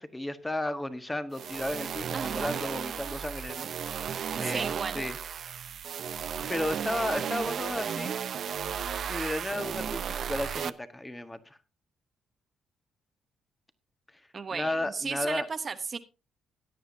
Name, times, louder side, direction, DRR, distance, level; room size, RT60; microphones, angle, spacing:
voice 1, 0.0-5.2 6.5-8.1 9.1-11.6 14.5-15.4, left 1 dB, 10° left, 1.5 m, -34 dB
sound 1, 1.3-10.7, right 8 dB, 60° right, 0.7 m, -34 dB
voice 2, 2.1-2.6 4.4-5.1 14.3-16.0, right 5 dB, 40° right, 1.0 m, -35 dB
17.0 x 9.4 x 2.7 m
cardioid pair, 90°, 0 cm